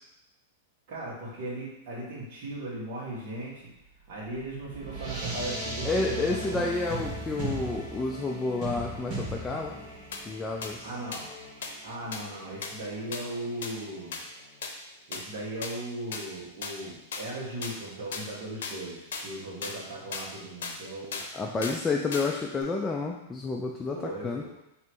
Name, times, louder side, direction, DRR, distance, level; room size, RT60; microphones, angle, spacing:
voice 1, 0.9-3.7 4.1-6.6 10.8-11.2 11.8-14.2 15.1-21.2 23.9-24.5, right 1 dB, 50° right, -6 dB, 1.5 m, -37 dB
sound 1, 3.8-14.6, right 2 dB, 30° right, 1.4 m, -39 dB
voice 2, 5.8-9.8 10.3-10.9 21.3-24.0 24.2-24.5, left 3 dB, 15° left, -1 dB, 0.3 m, -30 dB
sound 2, 10.1-10.2 10.6-10.7 11.1-11.2 11.6-11.7 12.1-12.2 12.6-12.7 13.1-13.2 13.6-13.7 14.1-14.2 14.6-14.7 15.1-15.2 15.6-15.7 16.1-16.2 16.6-16.7 17.1-17.2 17.6-17.7 18.1-18.2 18.6-18.7 19.1-19.2 19.6-19.8 20.1-20.3 20.6-20.8 21.1-21.3 21.6-21.8 22.1-22.3 22.6-22.7, left 5 dB, 85° left, 0.6 m, -35 dB
3.1 x 3.0 x 4.5 m, 0.87 s
supercardioid pair, 145°, 0 cm